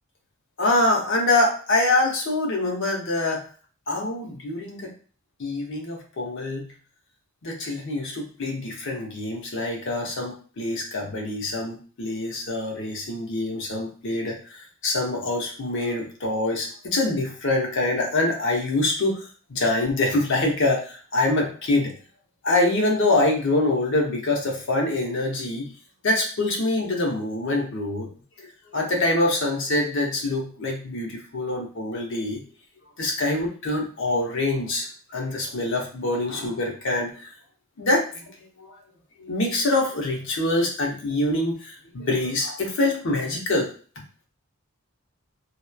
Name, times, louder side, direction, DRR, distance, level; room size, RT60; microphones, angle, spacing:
voice 1, 0.6-3.4 3.9-4.9 5.4-6.7 7.4-21.9 22.4-25.7 26.0-28.1 28.4-32.4 33.0-37.3 37.8-38.7 39.2-43.7, left 2 dB, 60° left, 1 dB, 0.7 m, -25 dB
2.9 x 2.0 x 2.2 m, 0.41 s
head